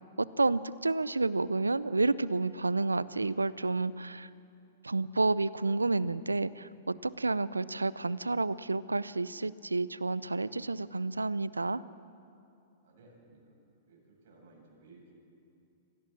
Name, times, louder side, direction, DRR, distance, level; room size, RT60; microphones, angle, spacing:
voice 1, 0.2-4.3 4.8-11.8, right 3 dB, 90° right, 18 dB, 0.6 m, -30 dB
voice 2, 12.8-13.5 13.8-15.1, right 3 dB, 55° right, -1 dB, 7.9 m, -58 dB
26.0 x 17.0 x 7.6 m, 2.6 s
figure-of-eight pair, 105°, 0 cm